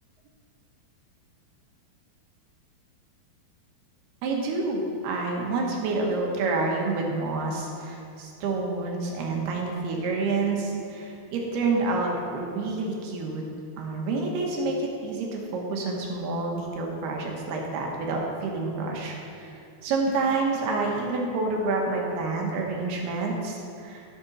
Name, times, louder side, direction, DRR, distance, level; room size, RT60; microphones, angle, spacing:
voice 1, 4.2-13.4 13.8-24.0, right 3 dB, 85° right, 0 dB, 3.4 m, -28 dB
16.0 x 7.1 x 4.2 m, 2.5 s
omnidirectional pair, 4.4 m